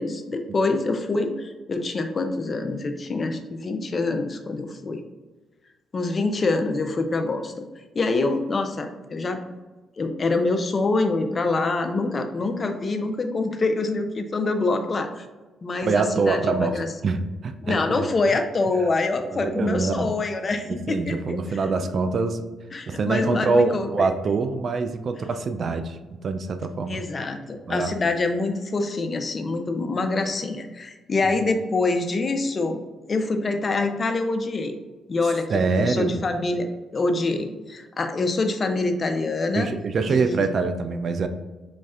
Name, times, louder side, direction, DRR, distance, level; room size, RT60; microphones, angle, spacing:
voice 1, 0.0-5.0 5.9-7.6 7.9-9.4 10.0-15.3 15.6-16.9 17.6-21.4 21.8-21.9 22.7-24.1 26.9-32.8 33.1-34.8 35.1-39.7 40.0-40.5, left 3 dB, 35° left, 6 dB, 0.4 m, -25 dB
voice 2, 15.8-18.1 19.2-20.1 20.7-22.4 22.9-27.0 27.7-27.9 35.5-36.2 39.5-41.3, right 4 dB, 50° right, 9 dB, 0.3 m, -25 dB
4.1 x 3.1 x 2.4 m, 1.3 s
cardioid pair, 90°, 0 cm